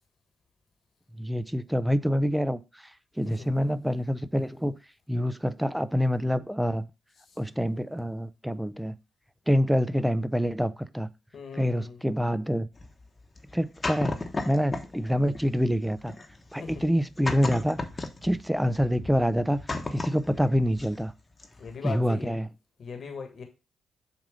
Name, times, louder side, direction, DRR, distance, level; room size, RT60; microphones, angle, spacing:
voice 1, 1.2-2.9 3.2-4.8 5.1-6.9 7.4-8.9 9.5-11.1 11.5-12.7 13.5-14.1 14.5-16.1 16.5-17.8 18.2-19.6 19.9-21.1 21.8-22.5, equal, 5° right, 0.6 m, -26 dB
voice 2, 11.3-12.0 16.6-16.7 21.6-22.3 22.8-23.4, left 5 dB, 60° left, 1.4 m, -39 dB
sound 1, 12.8-15.0 15.3-21.1 21.4-21.7, left 2 dB, 35° left, 1.0 m, -35 dB
7.3 x 2.6 x 5.1 m
supercardioid pair, 55°, 0 cm